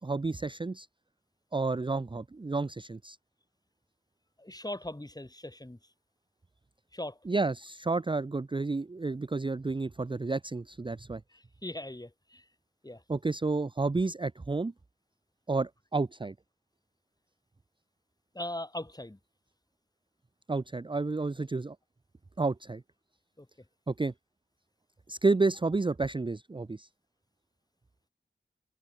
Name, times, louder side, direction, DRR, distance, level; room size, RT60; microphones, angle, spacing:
voice 1, 0.0-0.9 1.5-3.2 7.3-11.2 13.1-14.7 15.5-16.3 20.5-21.8 22.4-22.8 23.9-24.1 25.1-26.9, right 3 dB, 25° right, 0.6 m, -30 dB
voice 2, 4.4-5.8 6.9-7.2 11.3-12.4 12.8-13.0 18.3-19.2 23.4-23.5, left 1 dB, 20° left, 6.6 m, -40 dB
wide cardioid pair, 70°, 19 cm